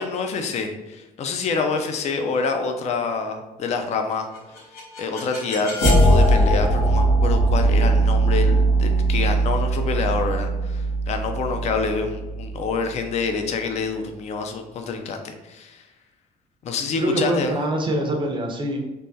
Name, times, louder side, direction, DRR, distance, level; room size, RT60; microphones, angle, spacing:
voice 1, 0.0-4.3 5.0-15.8 16.6-17.5, left 4 dB, 40° left, 6 dB, 0.4 m, -27 dB
sound 1, 4.3-13.3, right 2 dB, 85° left, 1.2 m, -20 dB
voice 2, 17.0-18.8, right 1 dB, 30° right, 2 dB, 0.5 m, -24 dB
3.4 x 2.2 x 2.6 m, 1.1 s
cardioid pair, 110°, 17 cm